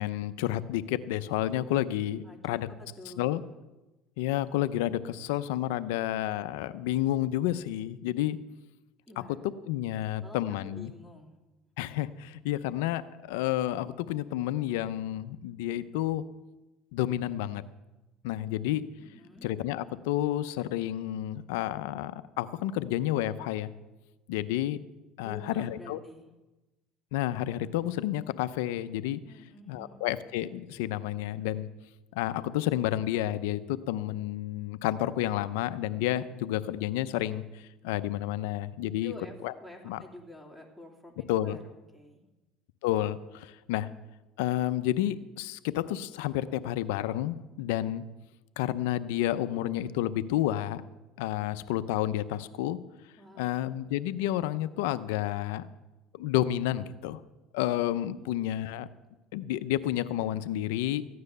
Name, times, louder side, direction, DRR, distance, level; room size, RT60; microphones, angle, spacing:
voice 1, 0.0-2.7 3.2-3.4 4.2-8.4 9.7-10.9 11.8-16.2 16.9-17.6 18.2-18.8 19.4-22.1 22.4-23.7 24.3-24.8 25.2-26.0 27.1-29.2 29.7-31.7 32.1-39.1 39.4-39.5 39.9-40.0 41.3-41.6 42.8-43.9 44.4-48.0 48.6-50.8 51.2-52.8 53.4-55.7 56.2-57.2 57.5-58.9 59.3-61.0, left 13 dB, 85° left, 14 dB, 0.6 m, -30 dB
voice 2, 2.2-3.5 9.1-9.4 9.9-11.3 19.0-19.5 25.2-26.3 29.3-30.0 39.0-39.3 39.6-41.6 41.9-42.2 53.2-53.6 58.1-58.3, left 2 dB, 5° right, 1 dB, 2.9 m, -49 dB
14.5 x 9.6 x 6.7 m, 1.1 s
supercardioid pair, 100°, 0 cm